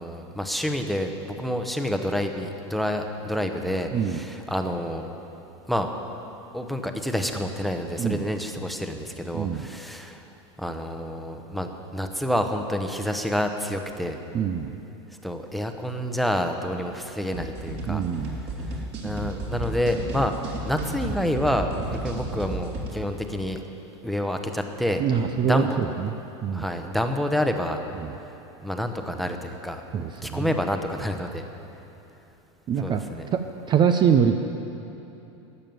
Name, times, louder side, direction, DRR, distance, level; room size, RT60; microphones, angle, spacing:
voice 1, 0.0-5.1 5.7-5.9 6.5-10.2 10.6-14.2 15.2-18.0 18.6-23.6 24.0-25.0 25.4-25.9 26.5-27.8 28.6-29.8 30.2-31.4 32.8-33.3, equal, ahead, 5 dB, 0.9 m, -28 dB
voice 2, 3.9-4.2 8.0-8.2 9.3-9.7 14.3-14.7 17.9-18.4 25.0-26.1 26.4-26.6 28.0-28.1 29.9-30.4 32.7-33.0 33.3-33.4 33.7-34.3, right 7 dB, 30° right, 7 dB, 0.5 m, -24 dB
sound 1, 17.3-22.9, right 1 dB, 45° right, 2.8 m, -33 dB
12.5 x 7.4 x 9.4 m, 3.0 s
supercardioid pair, 120°, 16 cm